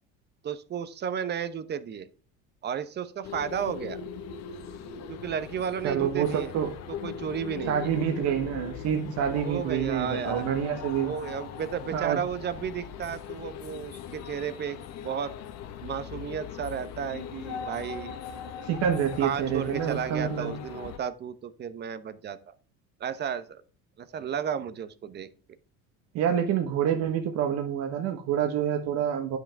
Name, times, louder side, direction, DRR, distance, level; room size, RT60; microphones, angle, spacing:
voice 1, 0.4-2.1 2.6-4.0 5.1-6.5 6.9-7.9 9.4-10.4 11.0-14.8 15.0-15.3 15.8-18.2 19.2-22.5 23.0-23.6 24.0-25.3, right 8 dB, 35° right, 13 dB, 0.9 m, -33 dB
sound 1, 3.2-21.0, left 7 dB, 60° left, 1.3 m, -40 dB
voice 2, 5.8-6.7 7.7-11.2 11.9-12.2 18.6-20.6 26.1-29.4, right 8 dB, 55° right, 4 dB, 1.3 m, -27 dB
9.6 x 6.1 x 3.4 m, 0.40 s
supercardioid pair, 115°, 30 cm